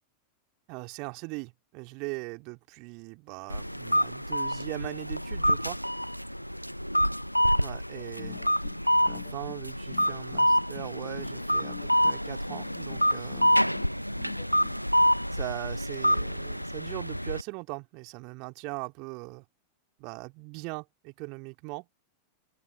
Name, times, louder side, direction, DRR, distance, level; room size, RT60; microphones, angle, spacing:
voice 1, 0.7-5.8 7.6-8.4 9.0-13.6 15.3-19.4 20.0-21.9, right 31 dB, 45° right, 3.0 m, -40 dB
sound 1, 3.5-17.4, equal, 90° left, 0.8 m, -27 dB
sound 2, 8.0-14.8, left 17 dB, 55° left, 1.4 m, -46 dB
open air
figure-of-eight pair, 90°, 0 cm